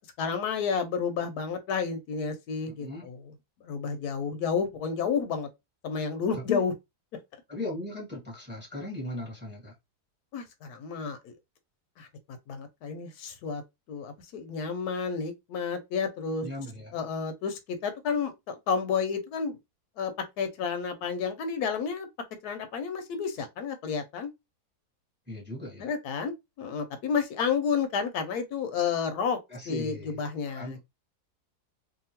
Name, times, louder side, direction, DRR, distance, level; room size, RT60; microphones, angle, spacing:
voice 1, 0.2-3.2 3.6-5.5 5.8-6.7 10.3-11.3 12.0-12.1 12.5-13.6 13.9-16.5 16.9-19.6 20.0-22.1 22.4-24.3 25.8-29.4 29.7-30.8, left 6 dB, 80° left, 1.1 m, -31 dB
voice 2, 2.7-3.1 6.3-6.6 7.5-9.7 16.4-16.9 25.3-25.9 29.5-30.2 30.5-30.8, left 1 dB, 10° right, 0.9 m, -37 dB
2.8 x 2.5 x 2.8 m
omnidirectional pair, 1.7 m